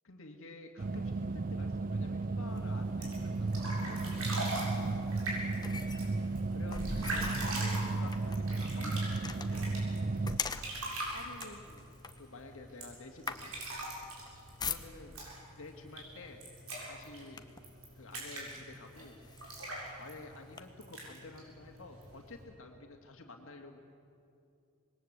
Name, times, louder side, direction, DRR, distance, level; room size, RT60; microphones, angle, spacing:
voice 1, 0.0-4.7 6.5-9.8 11.1-11.9 12.2-13.5 14.6-15.2 15.6-16.4 16.8-17.5 17.9-19.2 20.0-23.8, left 2 dB, 65° left, 3 dB, 2.3 m, -51 dB
sound 1, 0.8-10.4, right 3 dB, 40° right, 0.5 m, -34 dB
sound 2, 2.5-15.3 16.1-16.4 16.8-17.8 18.4-18.5 18.9-20.6, left 4 dB, 20° left, 1.0 m, -44 dB
sound 3, 2.8-22.4, right 1 dB, 80° right, 7.3 m, -42 dB
26.0 x 21.0 x 8.2 m, 2.5 s
head